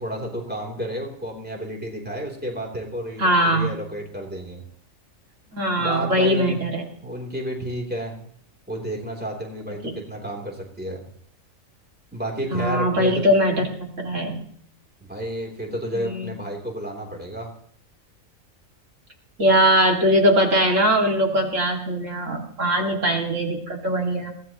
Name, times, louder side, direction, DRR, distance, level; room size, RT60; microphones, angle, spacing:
voice 1, 0.0-4.6 5.8-6.6 7.0-8.3 8.7-11.1 12.1-13.2 15.0-17.5, equal, 5° right, -1 dB, 3.2 m, -31 dB
voice 2, 3.2-3.7 5.5-6.8 9.8-9.9 12.5-14.4 15.9-16.3 19.4-24.3, equal, 65° right, 0 dB, 2.7 m, -21 dB
23.0 x 17.0 x 3.0 m, 0.63 s
omnidirectional pair, 1.4 m